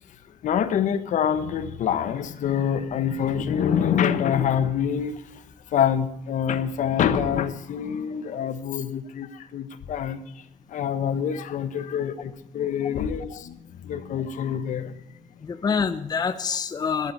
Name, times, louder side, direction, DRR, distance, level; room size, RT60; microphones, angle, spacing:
voice 1, 0.3-15.2, left 8 dB, 65° left, 11 dB, 1.2 m, -26 dB
voice 2, 8.1-8.4 15.4-17.1, left 6 dB, 30° left, 9 dB, 0.8 m, -27 dB
12.0 x 11.5 x 6.7 m, 0.78 s
cardioid pair, 120°, 14 cm